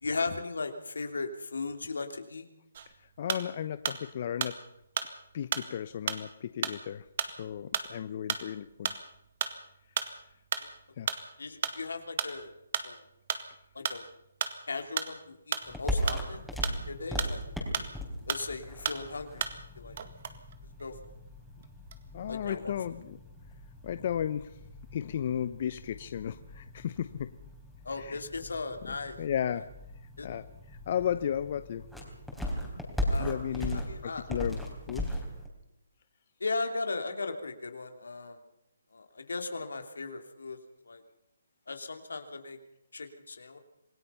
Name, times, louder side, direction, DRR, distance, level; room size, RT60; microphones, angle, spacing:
voice 1, 0.0-2.5 10.6-10.7 11.4-12.5 12.8-13.0 13.7-14.0 14.7-16.4 16.8-17.4 18.3-19.4 19.8-20.0 20.8-21.2 22.3-22.7 27.8-29.2 30.2-30.3 33.1-33.3 33.5-34.2 36.4-38.4 38.9-40.6 40.8-41.0 41.7-42.6 42.9-43.6, left 3 dB, 80° left, 6 dB, 3.0 m, -37 dB
sound 1, 2.7-4.1 4.4-18.0 18.3-19.7 20.0-21.2 21.6-22.2, right 7 dB, 50° right, 1.9 m, -34 dB
voice 2, 3.0-4.6 5.3-9.1 11.0-11.1 22.1-23.2 23.8-24.6 24.9-27.3 28.0-28.2 28.8-29.7 30.2-31.9 33.0-35.2, left 9 dB, 45° left, 13 dB, 0.8 m, -34 dB
sound 2, 15.6-35.5, equal, ahead, 3.9 m, -38 dB
27.0 x 17.5 x 5.7 m, 0.79 s
hypercardioid pair, 155°, 0 cm